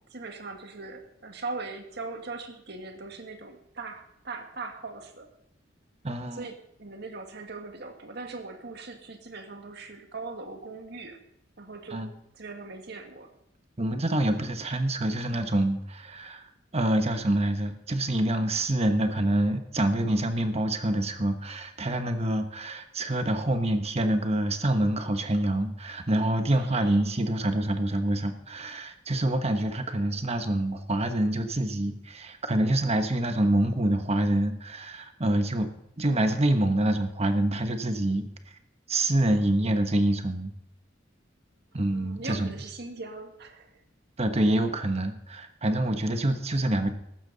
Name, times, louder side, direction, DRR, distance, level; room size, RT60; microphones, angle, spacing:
voice 1, 0.0-5.3 6.3-11.2 11.6-12.1 12.3-13.3 26.6-27.1 41.7-43.8, right 3 dB, 60° right, 4 dB, 1.9 m, -40 dB
voice 2, 6.0-6.4 11.9-12.1 13.8-16.5 16.7-35.7 36.0-38.3 38.9-40.5 41.7-42.5 44.2-46.9, right 1 dB, 35° right, 7 dB, 1.2 m, -26 dB
15.0 x 12.5 x 4.0 m, 0.80 s
head